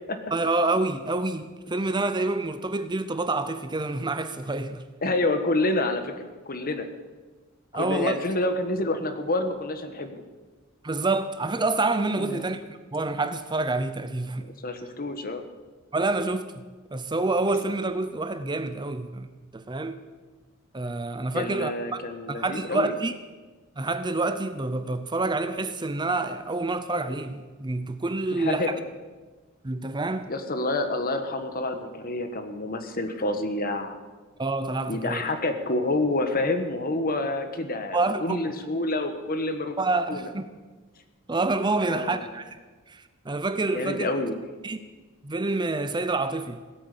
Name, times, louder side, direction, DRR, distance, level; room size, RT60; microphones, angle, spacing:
voice 1, 0.3-4.8 7.7-8.2 10.8-14.5 15.9-16.5 16.9-19.3 19.5-20.0 20.7-22.0 22.3-23.1 23.8-28.7 29.6-30.3 34.4-35.2 37.9-38.4 39.8-40.5 41.3-42.5 42.9-44.1 44.6-44.8 45.2-46.6, right 2 dB, 20° right, 0.7 m, -27 dB
voice 2, 5.0-6.9 7.7-10.2 12.2-12.5 14.4-15.4 21.3-22.9 28.3-28.8 30.3-34.0 34.9-39.8 40.1-40.3 41.8-42.3 43.7-44.3, left 2 dB, 45° left, 1.5 m, -28 dB
17.0 x 8.7 x 8.5 m
head